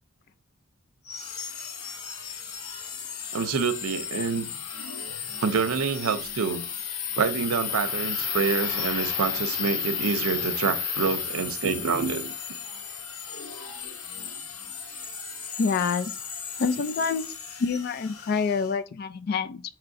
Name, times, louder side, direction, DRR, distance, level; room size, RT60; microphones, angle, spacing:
sound 1, 1.1-18.7, left 6 dB, 85° left, 0.7 m, -34 dB
voice 1, 3.3-4.5 5.4-6.6 7.2-12.3, right 5 dB, 85° right, 0.5 m, -27 dB
voice 2, 15.6-16.1 16.6-17.3 17.6-19.6, left 5 dB, 45° left, 0.3 m, -26 dB
5.7 x 3.0 x 2.5 m
head